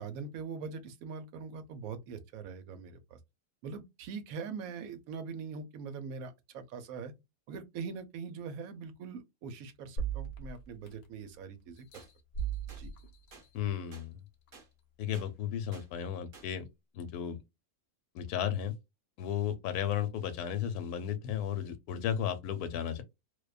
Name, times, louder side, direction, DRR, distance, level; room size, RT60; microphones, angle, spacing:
voice 1, 0.0-3.2 3.6-7.1 7.5-12.0 12.8-12.9, right 5 dB, 70° right, 1.0 m, -42 dB
sound 1, 10.0-11.3 11.8-13.9 14.5-14.6, right 7 dB, 55° left, 0.8 m, -38 dB
sound 2, 11.9-12.1 12.7-12.8 13.3-13.5 13.9-14.1 14.5-14.7 15.1-15.3 15.7-15.9 16.3-16.5, right 4 dB, 50° right, 0.7 m, -53 dB
voice 2, 13.5-14.2 15.0-16.7 16.9-17.4 18.1-18.7 19.2-23.0, left 9 dB, 85° left, 1.1 m, -34 dB
2.6 x 2.2 x 2.3 m
omnidirectional pair, 1.6 m